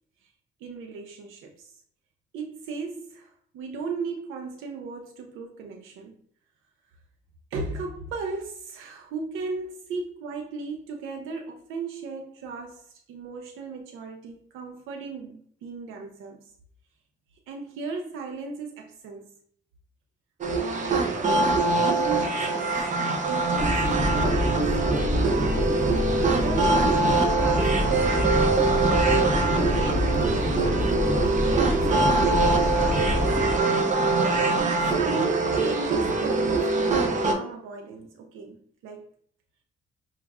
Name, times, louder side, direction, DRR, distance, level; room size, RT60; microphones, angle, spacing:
voice 1, 0.6-1.8 2.3-6.2 7.5-16.5 17.5-19.3 20.6-24.8 26.0-28.4 29.7-33.8 35.0-39.1, right 4 dB, 90° right, 0.5 m, -36 dB
sound 1, 20.4-37.3, right 3 dB, 40° right, 0.7 m, -23 dB
sound 2, 23.6-33.6, left 1 dB, 15° left, 0.7 m, -27 dB
5.3 x 2.4 x 2.2 m
cardioid pair, 90°, 20 cm